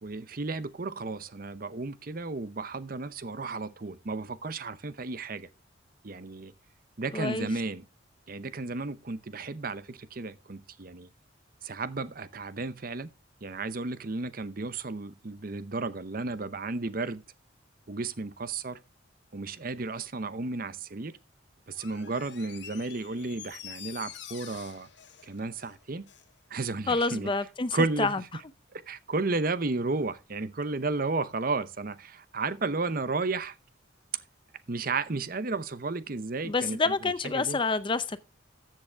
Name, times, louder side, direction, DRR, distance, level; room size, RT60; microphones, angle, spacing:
voice 1, 0.0-5.5 6.0-6.5 7.0-7.9 8.3-11.1 11.6-13.1 13.4-17.2 17.9-18.8 19.3-21.2 21.7-24.9 25.2-26.1 26.5-27.3 27.7-28.4 28.7-33.6 34.7-37.6, right 3 dB, 45° right, 0.8 m, -33 dB
voice 2, 7.1-7.5 26.9-28.2 36.4-38.2, left 3 dB, 25° left, 0.5 m, -28 dB
Door, 21.7-26.3 26.6-26.7, left 10 dB, 65° left, 1.3 m, -47 dB
14.0 x 7.6 x 3.4 m
head